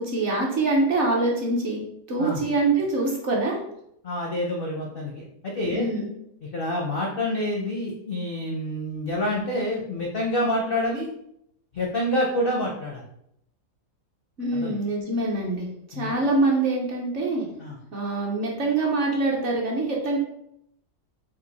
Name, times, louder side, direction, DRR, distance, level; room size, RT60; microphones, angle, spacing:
voice 1, 0.0-1.8 2.1-3.6 5.7-6.1 14.4-17.5 17.9-20.2, right 2 dB, 55° right, -1 dB, 0.9 m, -24 dB
voice 2, 4.0-5.9 6.4-11.1 11.7-13.0 14.5-14.8 15.9-16.1 17.6-17.8, left 1 dB, 60° left, -1 dB, 0.5 m, -27 dB
4.5 x 2.6 x 4.0 m, 0.76 s
omnidirectional pair, 1.8 m